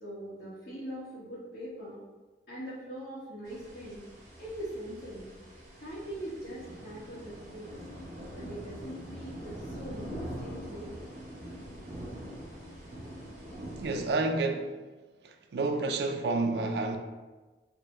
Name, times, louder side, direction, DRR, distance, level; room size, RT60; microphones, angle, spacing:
voice 1, 0.0-2.0 2.5-4.0 4.4-5.3 5.8-7.7 8.3-11.0, right 1 dB, 55° left, 1.0 m, -42 dB
sound 1, 3.4-14.1, equal, 40° right, 0.9 m, -44 dB
voice 2, 13.8-14.7 15.2-17.0, right 3 dB, 65° right, 0.3 m, -29 dB
3.3 x 2.0 x 4.2 m
head